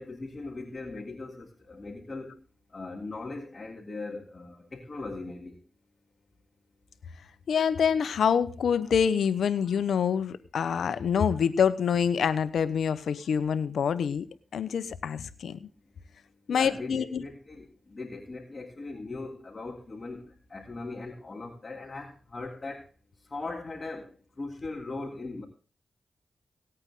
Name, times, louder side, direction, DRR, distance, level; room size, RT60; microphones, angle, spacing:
voice 1, 0.0-2.3 2.7-5.6 15.5-22.9 23.2-25.4, left 3 dB, 40° left, -3 dB, 3.5 m, -40 dB
voice 2, 7.5-14.3 14.5-15.6 16.5-17.2, left 7 dB, 85° left, 13 dB, 1.0 m, -26 dB
18.5 x 8.9 x 3.8 m, 0.38 s
cardioid pair, 50°, 0 cm